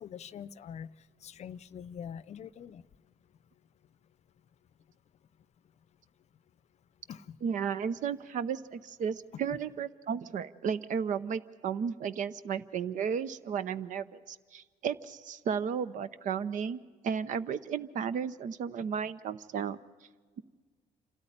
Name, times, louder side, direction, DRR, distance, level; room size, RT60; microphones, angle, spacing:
voice 1, 0.0-2.9 7.1-7.4, left 8 dB, 55° left, 18 dB, 0.6 m, -44 dB
voice 2, 7.4-19.8, right 7 dB, 65° right, 16 dB, 0.7 m, -34 dB
27.0 x 13.0 x 10.0 m, 1.5 s
cardioid pair, 90°, 14 cm